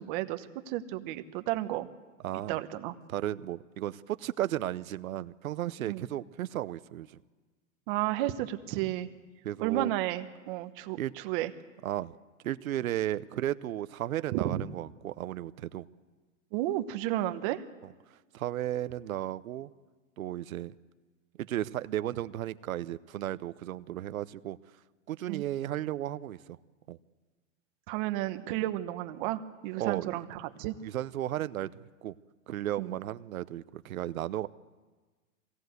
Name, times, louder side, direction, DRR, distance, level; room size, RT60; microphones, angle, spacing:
voice 1, 0.0-1.9 2.5-2.9 5.9-6.0 7.9-9.1 9.6-11.5 14.3-14.6 16.5-17.6 25.3-25.4 27.9-30.7 32.8-32.9, right 14 dB, 40° right, 10 dB, 1.1 m, -32 dB
voice 2, 2.2-2.6 3.1-7.2 8.7-8.8 9.4-9.9 11.0-11.1 11.8-12.1 12.4-15.9 17.8-17.9 18.3-19.7 20.2-20.7 21.4-24.6 25.1-26.6 26.9-27.0 29.8-30.1 30.8-32.1 32.5-34.5, right 13 dB, 90° right, 15 dB, 0.9 m, -34 dB
23.5 x 17.5 x 8.0 m, 1.3 s
supercardioid pair, 150°, 40 cm